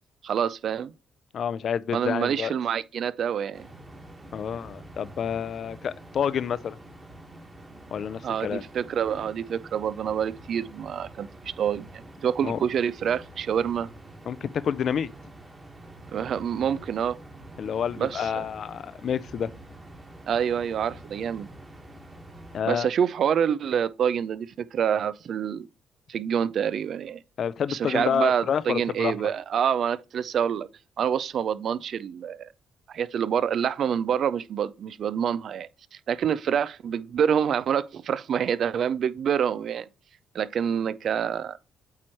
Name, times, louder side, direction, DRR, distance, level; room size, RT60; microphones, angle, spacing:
voice 1, 0.2-0.9 1.9-3.7 8.2-13.9 16.1-17.2 18.0-18.5 20.3-21.5 22.7-25.7 26.1-27.2 27.7-30.7 31.0-32.5 32.9-35.7 36.1-39.9 40.3-41.6, right 8 dB, 60° right, 0.4 m, -27 dB
voice 2, 1.3-2.5 4.3-6.8 7.9-8.6 12.4-12.6 14.3-15.1 17.6-19.5 22.5-22.9 27.4-29.3, left 8 dB, 60° left, 0.4 m, -28 dB
sound 1, 3.5-22.6, right 1 dB, 20° right, 1.6 m, -46 dB
8.4 x 3.2 x 4.4 m
cardioid pair, 80°, 0 cm